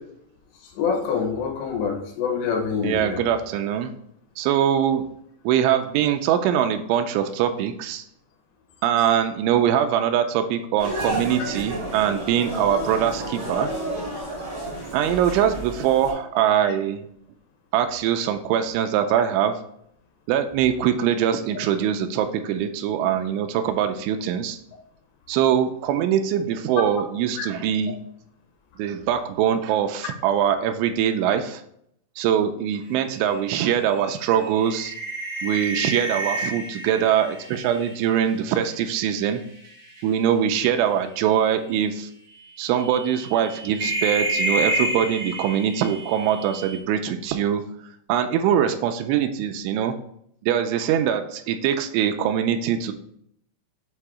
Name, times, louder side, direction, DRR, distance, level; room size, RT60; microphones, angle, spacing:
voice 1, 0.8-3.2 16.6-16.7 27.4-27.5, left 6 dB, 75° left, 2 dB, 2.8 m, -26 dB
voice 2, 2.8-3.9 4.4-5.0 5.4-8.0 8.8-13.7 14.9-17.1 17.7-19.6 20.3-24.6 25.3-28.0 28.8-31.6 32.2-34.9 35.4-39.4 40.0-42.1 42.6-47.6 48.1-50.0 50.4-52.9, right 9 dB, 85° right, 8 dB, 2.8 m, -22 dB
sound 1, 10.8-16.1, right 1 dB, 50° right, 0.5 m, -31 dB
sound 2, 32.9-39.2 39.6-40.0 41.2-41.3 41.8-41.9 42.8-46.8, right 1 dB, 65° right, 1.5 m, -30 dB
7.7 x 2.7 x 4.8 m, 0.70 s
omnidirectional pair, 5.4 m